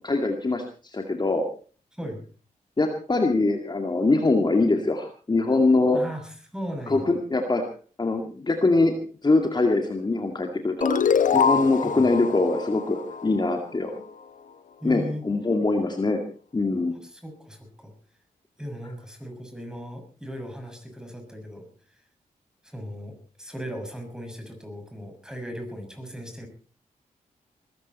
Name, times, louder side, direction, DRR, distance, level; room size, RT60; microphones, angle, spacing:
voice 1, 0.0-1.5 2.8-6.0 6.9-7.6 8.0-8.9 9.2-10.9 11.3-13.9 14.8-16.2 16.5-16.9, left 3 dB, 30° left, 4 dB, 2.3 m, -23 dB
voice 2, 1.9-2.2 5.9-7.1 11.8-12.0 13.9-14.0 14.8-15.2 17.0-17.9 18.6-21.7 22.6-26.5, equal, 5° right, 4 dB, 6.6 m, -37 dB
sound 1, 10.8-14.0, left 6 dB, 65° left, 1.1 m, -25 dB
21.0 x 14.5 x 4.3 m, 0.40 s
cardioid pair, 75°, 14 cm